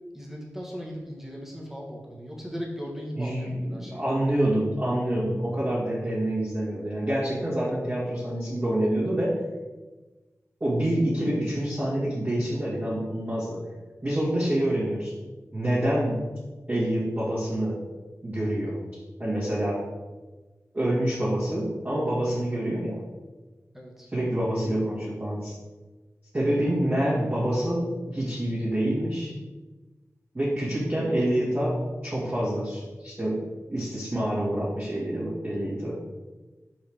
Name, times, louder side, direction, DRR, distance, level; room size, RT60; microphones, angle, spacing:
voice 1, 0.1-4.0 22.3-22.4 23.7-24.1, equal, 5° right, -3 dB, 1.5 m, -38 dB
voice 2, 3.2-9.4 10.6-13.6 14.0-15.1 15.5-16.2 16.7-17.8 18.2-18.8 19.2-19.8 20.7-23.0 24.1-25.5 26.3-29.3 30.3-33.4 33.7-36.0, right 1 dB, 30° right, -10 dB, 2.0 m, -27 dB
5.3 x 4.7 x 4.9 m, 1.2 s
wide cardioid pair, 100°, 6 cm